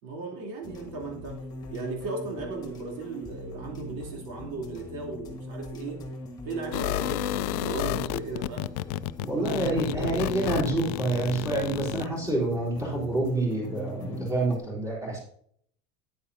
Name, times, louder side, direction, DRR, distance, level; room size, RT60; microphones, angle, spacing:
voice 1, 0.0-1.4 1.7-6.0 6.4-8.7 9.3-10.2, right 3 dB, 60° right, 0 dB, 3.3 m, -36 dB
sound 1, 0.6-14.6, left 1 dB, 20° left, 1.6 m, -42 dB
sound 2, 6.7-12.1, left 15 dB, 85° left, 0.4 m, -31 dB
voice 2, 9.2-15.2, right 2 dB, 15° right, -5 dB, 3.8 m, -28 dB
9.9 x 8.6 x 2.8 m, 0.65 s
cardioid pair, 170°, 20 cm